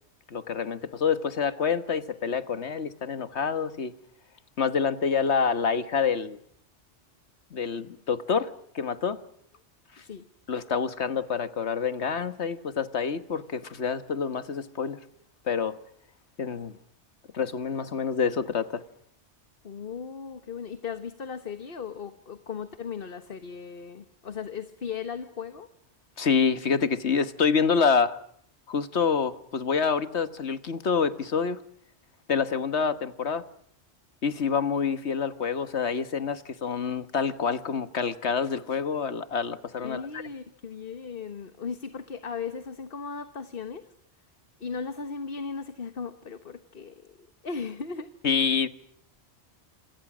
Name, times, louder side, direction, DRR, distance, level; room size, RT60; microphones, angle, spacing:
voice 1, 0.3-3.9 4.6-6.4 7.5-9.2 10.5-15.0 15.5-15.8 16.4-16.7 17.3-18.8 26.2-28.2 28.7-31.6 32.3-33.4 34.2-40.2 48.2-48.7, left 6 dB, 70° left, 12 dB, 1.7 m, -27 dB
voice 2, 19.6-25.7 39.8-43.8 44.6-47.1 47.4-48.1, left 5 dB, 55° left, 10 dB, 1.5 m, -37 dB
27.5 x 27.0 x 6.2 m, 0.67 s
omnidirectional pair, 1.2 m